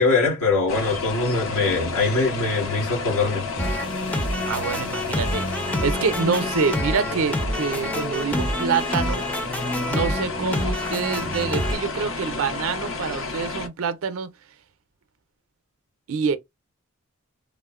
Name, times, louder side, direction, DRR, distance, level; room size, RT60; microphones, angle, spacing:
voice 1, 0.0-3.4, left 3 dB, 90° left, 1.5 m, -22 dB
sound 1, 0.7-13.7, left 4 dB, 65° left, 0.6 m, -31 dB
sound 2, 3.6-11.7, equal, 5° left, 0.4 m, -27 dB
voice 2, 4.4-9.3 9.9-14.3 16.1-16.4, right 5 dB, 70° right, 0.5 m, -26 dB
3.5 x 2.0 x 2.3 m
head